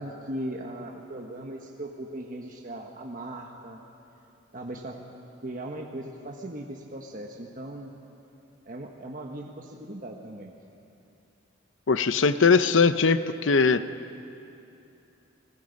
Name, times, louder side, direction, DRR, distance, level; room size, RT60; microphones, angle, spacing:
voice 1, 0.0-3.8 4.5-5.0 5.4-7.9 8.6-10.5, right 1 dB, 40° right, 1 dB, 1.3 m, -38 dB
voice 2, 11.9-13.8, left 4 dB, 70° left, 12 dB, 0.7 m, -20 dB
30.0 x 21.0 x 5.3 m, 2.8 s
head